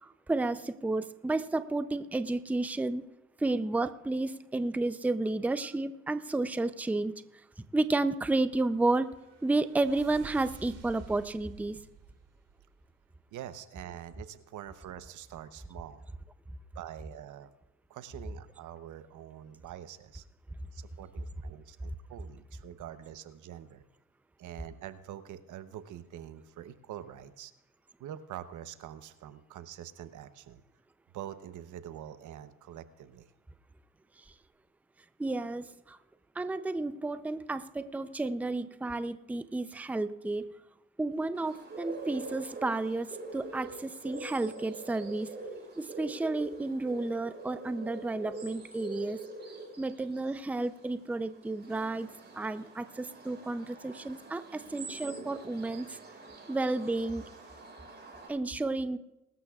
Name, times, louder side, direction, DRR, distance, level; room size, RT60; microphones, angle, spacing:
voice 1, 0.0-3.0 3.4-7.2 7.7-9.1 9.4-11.8 35.2-36.0 36.4-40.6 41.0-45.3 45.8-49.2 49.8-52.1 52.3-56.0 56.5-57.2 58.3-59.0, right 2 dB, 5° right, 12 dB, 0.5 m, -31 dB
sound 1, 8.4-13.2, right 7 dB, 55° right, 2.3 m, -53 dB
voice 2, 13.3-16.0 16.7-17.5 17.9-20.2 20.7-23.8 24.4-27.5 28.0-30.6 31.1-33.3, right 11 dB, 80° right, 12 dB, 0.9 m, -45 dB
sound 2, 41.3-58.3, right 2 dB, 35° right, 5.2 m, -45 dB
22.5 x 13.0 x 2.4 m, 0.98 s
cardioid pair, 90°, 30 cm